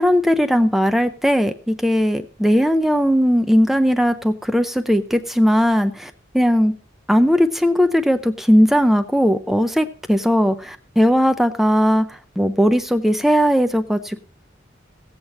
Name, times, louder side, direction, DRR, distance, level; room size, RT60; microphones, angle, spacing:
voice 1, 0.0-6.7 7.1-12.1 12.4-14.2, equal, ahead, 8 dB, 0.5 m, -18 dB
15.5 x 8.0 x 4.2 m, 0.42 s
head